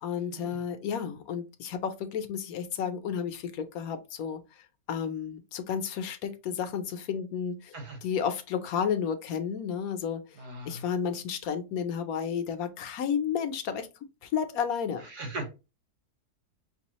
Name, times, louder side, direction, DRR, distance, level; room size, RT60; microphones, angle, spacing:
voice 1, 0.0-4.4 4.9-7.8 8.0-10.2 10.7-13.9 14.2-15.0, left 7 dB, 70° left, 1.0 m, -32 dB
voice 2, 10.4-10.8 15.1-15.6, right 2 dB, 80° right, 1.9 m, -39 dB
5.3 x 2.3 x 2.9 m
omnidirectional pair, 1.7 m